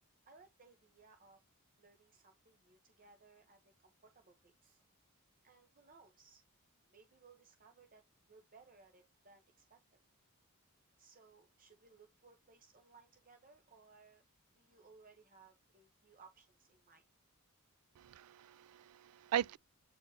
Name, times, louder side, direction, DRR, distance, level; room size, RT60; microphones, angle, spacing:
voice 1, 0.3-1.4 1.8-4.8 5.4-6.4 6.9-8.0 8.3-10.0 11.0-14.2 14.5-17.0, right 4 dB, 40° right, 0.9 m, -63 dB
voice 2, 18.0-19.6, right 10 dB, 85° right, 0.3 m, -39 dB
8.4 x 4.4 x 2.8 m
head